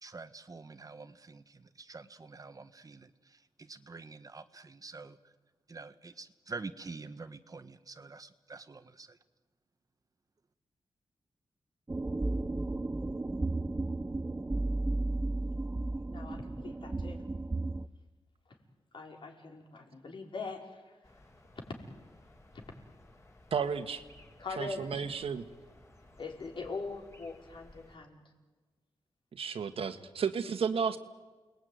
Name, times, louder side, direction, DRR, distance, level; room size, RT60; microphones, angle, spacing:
voice 1, 0.0-5.3 5.7-9.2, right 4 dB, 40° right, 11 dB, 1.4 m, -47 dB
sound 1, 11.9-17.9, right 2 dB, 20° right, 0.9 m, -34 dB
voice 2, 16.1-17.2 18.9-20.9 22.5-22.6 24.4-25.1 26.2-28.2, left 3 dB, 60° left, 1 dB, 5.3 m, -42 dB
sound 2, 21.0-28.0, left 1 dB, 30° left, 5.7 m, -58 dB
voice 3, 23.5-24.0 24.6-25.5 29.3-31.0, right 6 dB, 75° right, 8 dB, 1.8 m, -32 dB
29.5 x 20.5 x 9.6 m, 1.3 s
wide cardioid pair, 95°, 10 cm